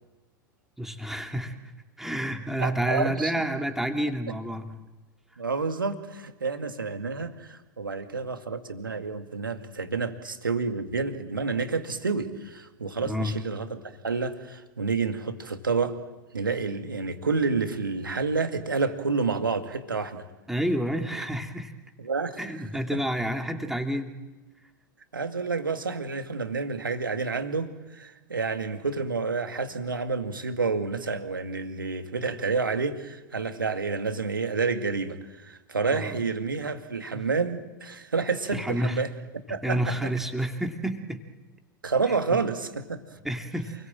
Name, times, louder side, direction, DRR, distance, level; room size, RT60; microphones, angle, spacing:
voice 1, 0.8-1.6 2.0-4.8 13.0-13.4 20.5-21.7 22.4-24.2 35.9-36.1 37.1-37.2 38.5-39.0 39.6-41.2 43.2-43.7, equal, 5° right, 4 dB, 2.6 m, -29 dB
voice 2, 2.6-3.3 5.4-15.9 16.3-20.3 22.0-22.4 22.9-23.0 25.1-39.1 39.5-40.1 41.8-43.0, right 4 dB, 80° right, 7 dB, 2.2 m, -29 dB
29.0 x 21.5 x 7.6 m, 1.1 s
figure-of-eight pair, 90°, 11 cm